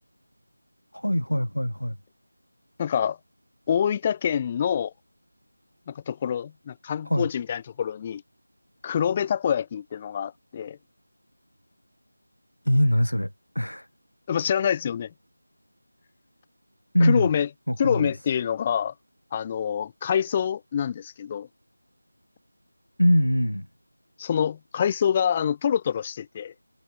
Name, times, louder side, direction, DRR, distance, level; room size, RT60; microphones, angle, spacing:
voice 1, 0.9-2.0 7.0-7.3 12.6-13.9 16.9-17.3 17.7-18.1 23.0-23.7, equal, 90° left, 0.9 m, -23 dB
voice 2, 2.8-3.2 3.7-4.9 5.9-8.2 8.8-10.8 14.3-15.1 17.0-17.5 17.8-18.9 19.3-21.5 24.2-26.5, left 8 dB, 15° left, 1.0 m, -26 dB
figure-of-eight pair, 170°, 0 cm